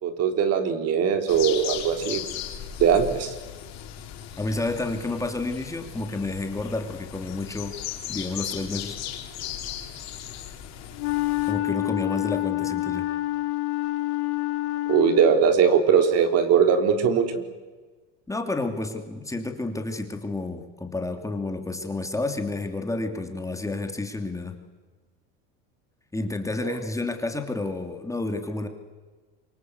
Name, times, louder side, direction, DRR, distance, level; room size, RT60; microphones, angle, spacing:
voice 1, 0.0-2.2 2.8-3.3 14.9-17.4 26.6-26.8, right 7 dB, 45° right, 7 dB, 3.8 m, -20 dB
sound 1, 1.3-11.5, left 10 dB, 50° left, 4.9 m, -37 dB
voice 2, 4.4-7.7 8.1-9.0 11.4-13.1 18.3-24.6 26.1-28.7, left 2 dB, 10° left, 5 dB, 2.9 m, -30 dB
Wind instrument woodwind instrument, 11.0-15.5, left 17 dB, 80° left, 3.2 m, -27 dB
27.5 x 24.5 x 8.1 m, 1.3 s
supercardioid pair, 115°, 33 cm